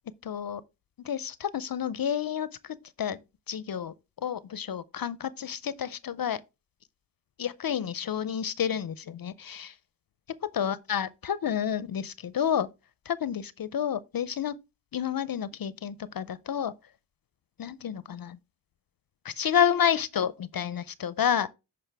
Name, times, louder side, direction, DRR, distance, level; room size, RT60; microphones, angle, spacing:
voice 1, 0.2-0.6 1.0-3.2 3.5-6.4 7.4-9.7 10.3-12.7 13.1-14.5 14.9-16.7 17.6-18.4 19.2-21.5, left 9 dB, 55° left, 0.6 m, -30 dB
9.9 x 5.2 x 3.3 m
cardioid pair, 55°, 43 cm